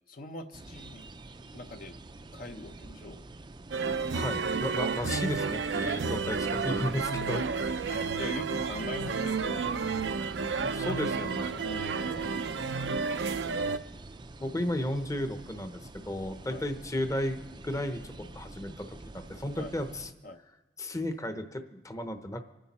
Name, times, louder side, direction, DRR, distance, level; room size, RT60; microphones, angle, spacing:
voice 1, 0.1-1.0 1.5-2.0 2.3-3.2 5.7-6.0 6.6-7.2 7.9-9.8 10.2-10.6 11.6-12.6 16.5-16.7 19.6-19.7 20.2-20.4, left 2 dB, 50° left, 6 dB, 0.8 m, -43 dB
sound 1, 0.5-20.1, right 2 dB, 25° right, 0.5 m, -48 dB
sound 2, 3.7-13.8, right 4 dB, 80° right, 0.6 m, -31 dB
voice 2, 4.1-8.0 10.6-11.6 14.4-20.1 20.8-22.4, left 1 dB, 20° left, 7 dB, 0.8 m, -34 dB
25.5 x 10.0 x 4.2 m, 1.1 s
head